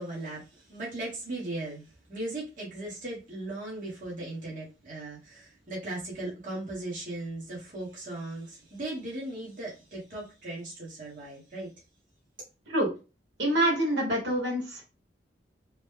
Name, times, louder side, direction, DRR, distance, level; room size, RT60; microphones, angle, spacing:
voice 1, 0.0-11.7, right 2 dB, 45° right, 1.2 m, -38 dB
voice 2, 13.4-14.8, right 1 dB, 80° right, 1.4 m, -26 dB
3.0 x 2.1 x 3.5 m
head